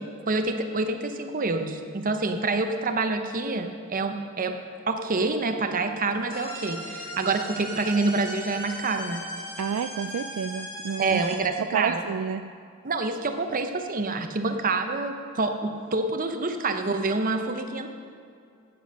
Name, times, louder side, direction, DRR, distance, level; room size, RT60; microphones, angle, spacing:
voice 1, 0.0-4.6 4.9-9.2 11.0-12.1 12.8-17.9, right 3 dB, 40° right, 6 dB, 0.8 m, -27 dB
sound 1, 6.3-11.4, equal, 25° left, 2.5 m, -38 dB
voice 2, 9.6-11.2 11.6-12.5, right 7 dB, 70° right, 9 dB, 0.3 m, -30 dB
9.3 x 8.5 x 6.4 m, 2.4 s
head